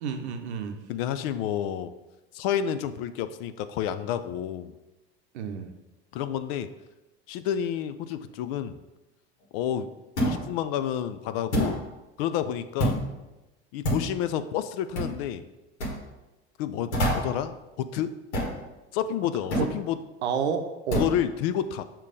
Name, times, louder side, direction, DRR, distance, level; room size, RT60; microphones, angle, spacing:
voice 1, 0.0-0.8 5.3-5.7 19.5-19.7 20.2-21.1, right 6 dB, 80° right, 7 dB, 0.7 m, -30 dB
voice 2, 0.9-1.9 2.3-4.7 6.1-6.7 7.3-8.8 9.5-10.0 10.2-11.9 12.2-13.0 13.7-15.5 16.6-18.2 18.9-20.0 20.9-21.8, left 10 dB, 60° left, 12 dB, 0.5 m, -30 dB
sound 1, 10.2-10.5 11.5-11.8 12.8-13.1 13.8-14.1 15.0-15.2 15.8-16.0 16.9-17.4 18.3-18.6 19.5-19.7 20.9-21.2, equal, 85° left, 1.5 m, -26 dB
6.6 x 3.0 x 4.9 m, 1.0 s
hypercardioid pair, 80°, 33 cm